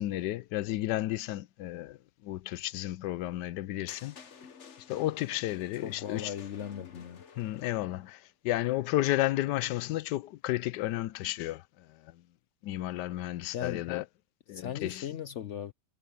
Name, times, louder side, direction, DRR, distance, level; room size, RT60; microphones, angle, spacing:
voice 1, 0.0-4.2 4.9-6.3 7.4-12.2 12.6-14.0 14.5-15.1, left 15 dB, 80° left, 1.2 m, -32 dB
sound 1, 3.9-8.1, left 6 dB, 45° left, 1.3 m, -52 dB
voice 2, 5.8-7.2 13.5-13.9 14.5-15.7, left 9 dB, 65° left, 0.7 m, -38 dB
omnidirectional pair, 1.8 m